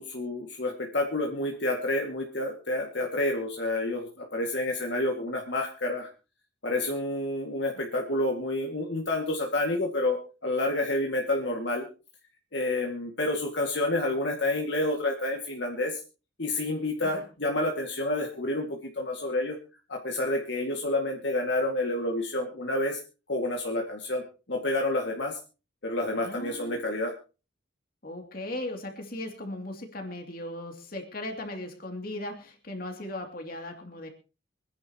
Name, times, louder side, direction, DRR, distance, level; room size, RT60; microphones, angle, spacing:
voice 1, 0.0-6.1 6.6-11.9 12.5-16.0 16.4-19.6 19.9-23.0 23.3-25.4 25.8-27.1, left 2 dB, 65° left, 1 dB, 2.1 m, -29 dB
voice 2, 26.2-26.8 28.0-34.1, left 1 dB, 45° left, 3 dB, 2.7 m, -38 dB
25.5 x 10.5 x 2.9 m, 0.33 s
head